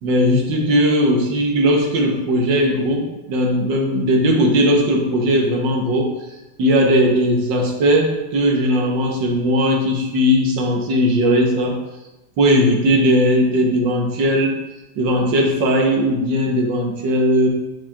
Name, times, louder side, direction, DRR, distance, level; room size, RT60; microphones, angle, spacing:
voice 1, 0.0-6.1 6.6-11.8 12.4-14.6 15.0-17.5, equal, 70° right, 1 dB, 1.6 m, -18 dB
7.7 x 5.7 x 2.3 m, 1.0 s
omnidirectional pair, 2.1 m